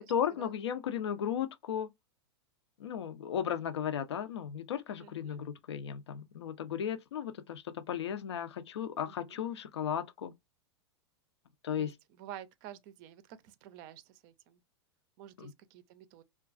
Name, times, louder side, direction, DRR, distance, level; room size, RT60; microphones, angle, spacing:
voice 1, 0.0-1.9 2.8-10.3 11.6-11.9 15.4-15.5, left 9 dB, 75° left, 0.4 m, -35 dB
voice 2, 5.0-5.4 9.1-9.4 11.8-14.6 15.2-16.2, right 11 dB, 45° right, 0.4 m, -50 dB
2.3 x 2.2 x 2.4 m
figure-of-eight pair, 95°, 14 cm